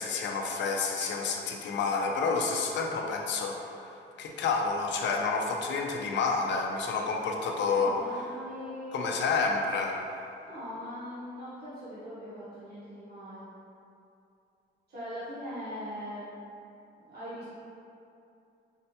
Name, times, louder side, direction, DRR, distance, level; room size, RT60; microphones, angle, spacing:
voice 1, 0.0-3.9 4.2-8.0 8.9-10.0, left 4 dB, 65° left, 1 dB, 0.4 m, -29 dB
voice 2, 7.7-9.1 10.5-13.5 14.9-16.3 17.1-17.5, equal, 55° right, -12 dB, 1.2 m, -41 dB
4.3 x 2.1 x 2.7 m, 2.7 s
cardioid pair, 90°, 20 cm